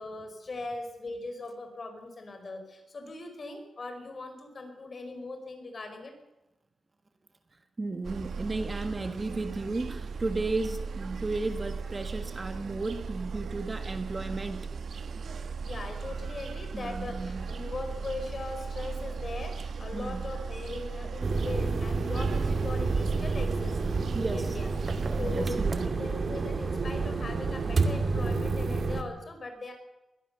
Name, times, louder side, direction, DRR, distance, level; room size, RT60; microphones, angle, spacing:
voice 1, 0.0-6.1 15.6-24.7 25.2-29.7, left 2 dB, 40° left, 6 dB, 5.2 m, -40 dB
voice 2, 7.8-14.7 16.7-17.5 19.9-20.3 24.1-24.6 24.9-26.1, right 3 dB, 25° right, 8 dB, 1.6 m, -34 dB
sound 1, 8.0-25.9, right 5 dB, 65° right, 1.3 m, -37 dB
sound 2, 21.2-29.0, right 4 dB, 45° right, 2.3 m, -29 dB
22.5 x 17.5 x 6.9 m, 1.0 s
wide cardioid pair, 135°, 0 cm